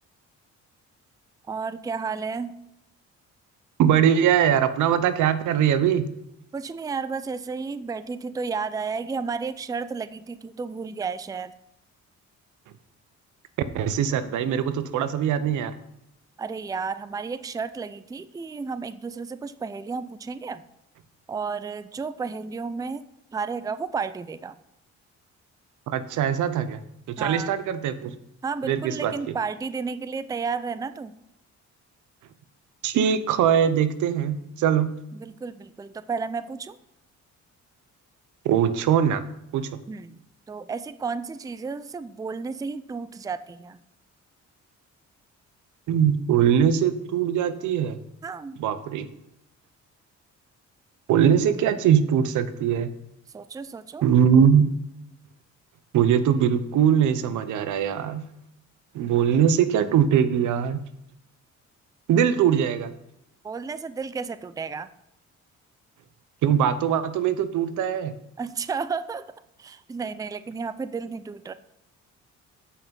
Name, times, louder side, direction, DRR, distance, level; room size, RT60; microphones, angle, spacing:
voice 1, 1.5-2.6 6.5-11.5 16.4-20.6 21.3-23.0 23.3-24.5 27.2-27.5 28.4-31.1 35.1-36.8 39.9-40.2 40.5-43.8 48.2-48.6 53.3-54.1 63.4-64.9 68.4-69.3 69.6-71.5, right 5 dB, 10° right, 13 dB, 0.4 m, -32 dB
voice 2, 3.8-6.1 13.7-15.7 25.9-26.8 27.1-28.2 28.7-29.3 32.8-34.9 38.4-39.2 39.5-39.7 45.9-48.0 48.6-49.1 51.1-52.9 54.0-54.7 55.9-58.2 58.9-60.8 62.1-62.9 66.4-68.1, right 8 dB, 80° right, 12 dB, 0.8 m, -21 dB
8.4 x 5.6 x 5.3 m, 0.83 s
cardioid pair, 90°, 30 cm